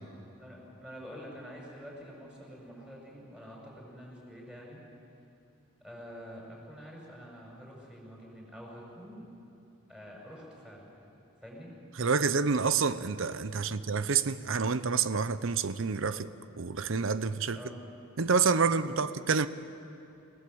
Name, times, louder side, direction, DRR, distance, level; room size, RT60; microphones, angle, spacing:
voice 1, 0.4-4.8 5.8-9.3 9.9-11.2 11.4-11.7 13.5-13.9 17.5-17.8 18.9-19.1, equal, 5° right, 6.0 m, -47 dB
voice 2, 12.0-16.3 16.6-17.6 18.2-19.5, right 5 dB, 65° right, 0.7 m, -28 dB
28.5 x 18.0 x 7.9 m
head